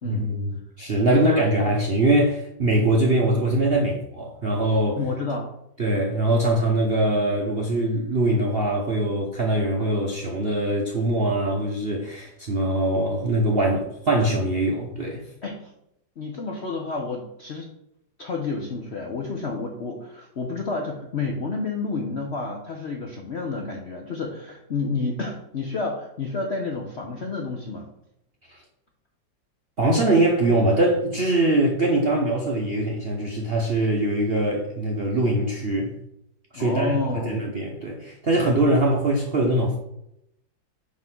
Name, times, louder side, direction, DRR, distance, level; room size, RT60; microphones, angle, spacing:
voice 1, 0.0-5.0 5.8-15.2 28.5-28.6 29.8-35.9 36.5-39.8, right 1 dB, 50° right, 0.7 m, -22 dB
voice 2, 1.1-1.8 5.0-5.5 15.4-15.7 16.2-17.7 18.2-27.9 36.5-37.5, left 3 dB, 60° left, 0.7 m, -30 dB
5.7 x 3.7 x 5.9 m
omnidirectional pair, 2.1 m